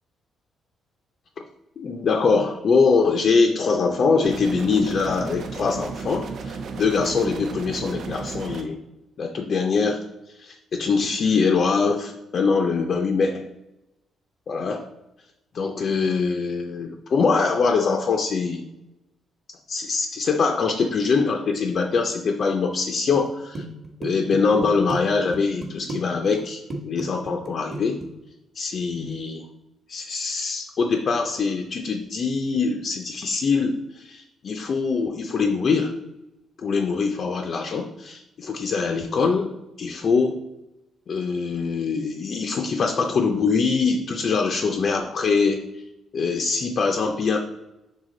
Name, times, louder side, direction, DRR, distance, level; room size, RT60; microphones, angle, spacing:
voice 1, 1.8-8.8 9.2-13.5 14.5-14.9 15.5-18.6 19.7-23.6 24.0-28.0 28.5-29.5 29.9-35.9 36.6-39.5 39.8-40.4 41.1-45.8 46.1-47.4, left 4 dB, 45° left, 3 dB, 0.5 m, -23 dB
sound 1, 4.2-8.6, right 4 dB, 60° right, 0.6 m, -34 dB
sound 2, 23.1-23.3 23.5-25.0 25.3-26.0 26.2-26.4 26.7-28.1, right 2 dB, 25° right, 1.1 m, -32 dB
6.4 x 3.9 x 3.8 m, 0.94 s
cardioid pair, 160°, 0 cm